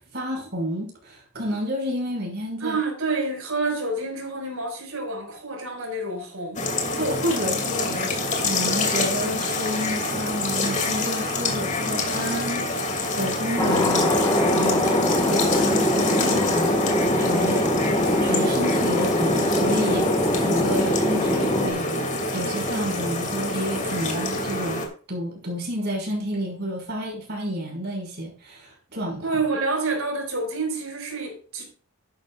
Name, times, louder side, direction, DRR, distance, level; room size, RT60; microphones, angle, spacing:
voice 1, 0.0-2.8 7.0-12.9 13.2-14.1 14.5-16.8 17.2-17.7 18.2-22.0 22.3-24.8 25.1-29.3, equal, 50° right, 6.0 m, -30 dB
voice 2, 2.6-6.6 29.2-31.7, right 3 dB, 75° right, 5.6 m, -28 dB
sound 1, 6.6-24.9, left 2 dB, 35° left, 2.7 m, -27 dB
Thunder, 13.6-21.7, left 1 dB, 15° left, 1.7 m, -22 dB
13.0 x 10.5 x 2.5 m
head